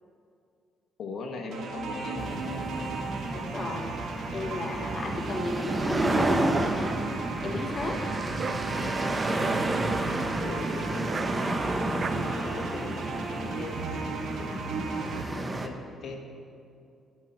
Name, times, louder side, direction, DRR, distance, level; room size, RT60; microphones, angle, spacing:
voice 1, 1.0-3.1 4.6-4.7 9.3-9.6 10.4-11.7 12.1-15.7 16.0-16.3, left 3 dB, 65° left, 3 dB, 1.4 m, -40 dB
sound 1, 1.5-15.2, right 3 dB, 70° right, 1.5 m, -36 dB
sound 2, 2.2-15.7, right 2 dB, 20° right, 1.0 m, -31 dB
voice 2, 3.3-3.9 4.3-7.2 7.4-8.0, left 3 dB, 40° left, 2 dB, 1.2 m, -35 dB
Dog, 6.0-12.1, right 6 dB, 45° right, 0.4 m, -40 dB
9.5 x 7.4 x 8.0 m, 2.5 s
cardioid pair, 90°, 0 cm